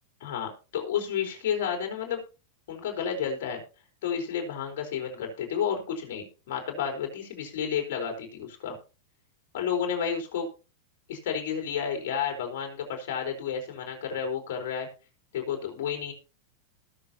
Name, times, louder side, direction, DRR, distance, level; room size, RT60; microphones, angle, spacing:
voice 1, 0.2-2.2 2.7-3.6 4.0-8.8 9.5-10.5 11.1-14.9 15.3-16.1, left 7 dB, 65° left, 2 dB, 4.3 m, -31 dB
20.0 x 6.9 x 2.9 m, 0.33 s
hypercardioid pair, 120°, 0 cm